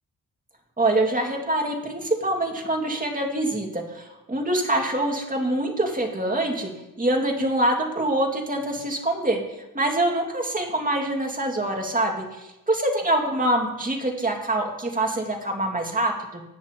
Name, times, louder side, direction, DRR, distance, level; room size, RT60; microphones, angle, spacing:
voice 1, 0.8-6.7 7.0-16.4, right 1 dB, 25° right, 1 dB, 2.2 m, -25 dB
18.0 x 7.8 x 3.0 m, 0.97 s
cardioid pair, 80°, 35 cm